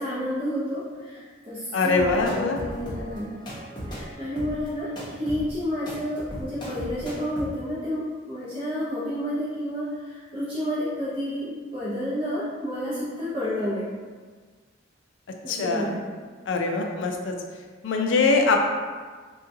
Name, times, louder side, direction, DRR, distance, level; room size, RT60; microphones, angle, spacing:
voice 1, 0.0-3.6 3.9-13.9 15.4-16.0, equal, 30° right, -10 dB, 0.8 m, -30 dB
voice 2, 1.7-2.6 15.5-15.9 16.5-17.3 17.8-18.7, left 3 dB, 80° left, 3 dB, 0.4 m, -23 dB
sound 1, 2.0-7.5, equal, 25° left, 0.8 m, -37 dB
3.6 x 2.3 x 2.7 m, 1.5 s
head